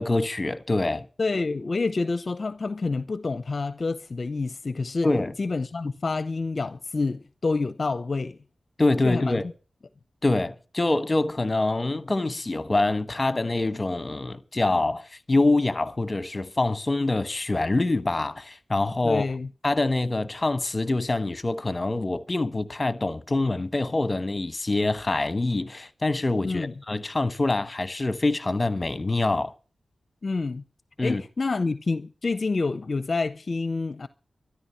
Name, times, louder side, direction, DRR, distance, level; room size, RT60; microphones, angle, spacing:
voice 1, 0.0-1.0 5.0-5.3 8.8-9.4 10.2-19.2 19.6-29.5 31.0-31.2, left 2 dB, 30° left, 1.2 m, -25 dB
voice 2, 1.2-5.1 5.4-8.4 9.0-9.4 19.0-19.5 26.4-26.7 30.2-30.6 31.0-34.1, left 3 dB, 50° left, 0.7 m, -28 dB
13.0 x 11.5 x 5.8 m
wide cardioid pair, 75°, 0 cm